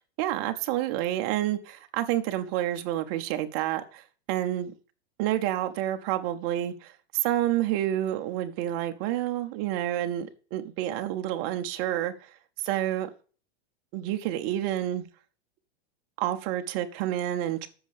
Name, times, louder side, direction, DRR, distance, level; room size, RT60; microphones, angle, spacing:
voice 1, 0.2-4.0 4.3-4.7 5.2-12.3 12.6-13.1 13.9-15.0 16.2-17.7, right 13 dB, 25° right, 0.6 m, -29 dB
7.9 x 6.3 x 6.4 m
supercardioid pair, 175°, 33 cm